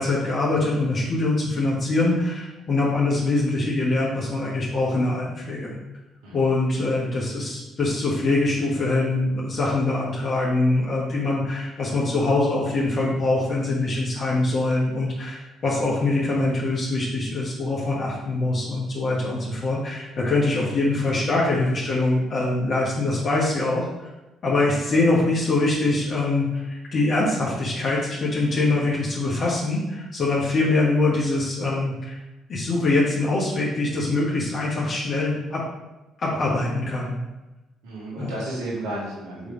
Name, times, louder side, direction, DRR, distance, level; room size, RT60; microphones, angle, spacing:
voice 1, 0.0-5.7 6.3-24.1 24.4-32.2 32.5-35.6 36.2-37.2 38.2-38.3, left 2 dB, 50° left, -5 dB, 1.6 m, -23 dB
voice 2, 37.8-39.5, right 1 dB, 80° right, -4 dB, 1.9 m, -33 dB
7.0 x 3.4 x 4.1 m, 1.0 s
hypercardioid pair, 55°, 0 cm